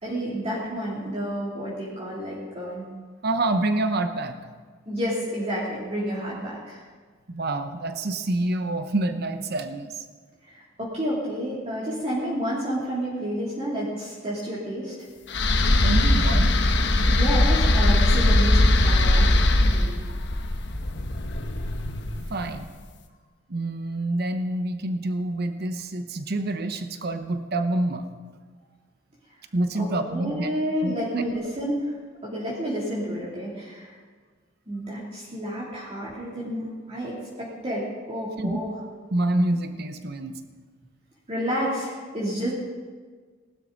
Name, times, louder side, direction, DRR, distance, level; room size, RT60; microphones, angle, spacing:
voice 1, 0.0-2.9 4.9-6.8 10.5-14.9 17.1-19.3 19.6-20.0 29.7-32.0 32.2-33.9 34.7-38.7 41.3-42.5, equal, 35° right, -7 dB, 3.1 m, -30 dB
voice 2, 3.2-4.4 7.3-10.0 15.8-16.5 22.3-22.7 23.5-28.1 29.5-30.5 30.8-30.9 38.4-38.6 39.1-40.3, right 2 dB, 55° right, 8 dB, 0.9 m, -27 dB
sound 1, 15.3-22.5, left 1 dB, 65° left, 1.1 m, -20 dB
19.0 x 12.0 x 4.1 m, 1.5 s
head